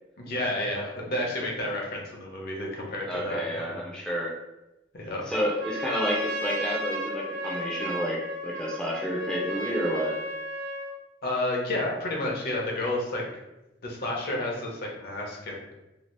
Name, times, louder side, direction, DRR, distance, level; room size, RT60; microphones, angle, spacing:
voice 1, 0.2-3.8 4.9-5.2 11.2-13.2 13.8-15.7, left 1 dB, 55° left, -1 dB, 0.7 m, -31 dB
voice 2, 3.1-4.3 5.3-10.2, equal, 5° left, -4 dB, 0.5 m, -30 dB
Trumpet, 5.5-11.0, equal, 85° right, 0.7 m, -34 dB
2.7 x 2.4 x 3.2 m, 0.96 s
head